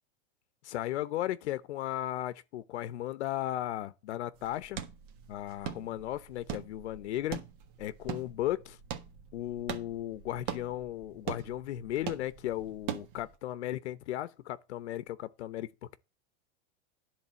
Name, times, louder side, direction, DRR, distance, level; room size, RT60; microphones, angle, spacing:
voice 1, 0.6-4.8 5.3-7.4 7.8-8.8 9.3-16.0, left 13 dB, 85° left, 0.8 m, -36 dB
sound 1, 4.3-13.3, right 9 dB, 50° right, 1.5 m, -42 dB
10.5 x 3.9 x 7.5 m
supercardioid pair, 155°, 33 cm